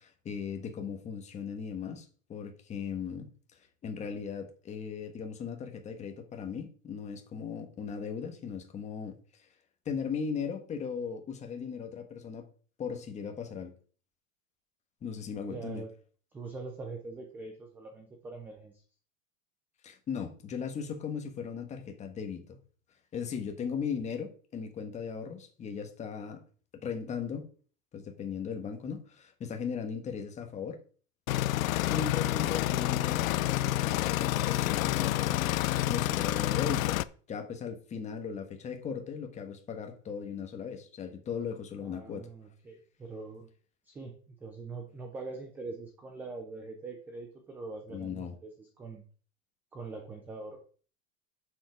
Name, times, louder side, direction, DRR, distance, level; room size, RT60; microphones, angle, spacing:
voice 1, 0.0-3.3 3.8-9.5 9.8-12.5 12.8-13.7 15.0-15.8 19.8-22.6 23.1-26.4 26.8-27.5 27.9-30.8 31.6-37.0 37.3-42.3 47.9-48.4, left 6 dB, 15° left, 1.3 m, -38 dB
voice 2, 15.5-15.9 16.3-18.8 41.8-43.5 43.8-49.0 49.7-50.6, right 3 dB, 5° right, 0.3 m, -43 dB
sound 1, 31.3-37.0, left 15 dB, 80° left, 0.7 m, -28 dB
9.1 x 7.0 x 4.7 m
supercardioid pair, 165°, 40 cm